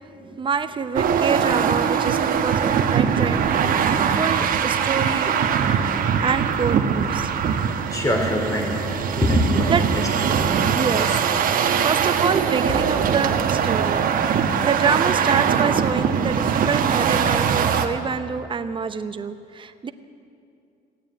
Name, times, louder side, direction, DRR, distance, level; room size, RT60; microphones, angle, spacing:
voice 1, 0.2-3.4 4.2-5.4 6.2-7.3 9.7-9.9 10.7-19.9, right 6 dB, 30° right, 11 dB, 0.7 m, -26 dB
sound 1, 0.9-17.9, right 7 dB, 55° right, 1.1 m, -21 dB
voice 2, 7.9-11.5, left 1 dB, 20° left, 1 dB, 3.4 m, -25 dB
16.5 x 9.4 x 8.9 m, 2.5 s
cardioid pair, 110°, 17 cm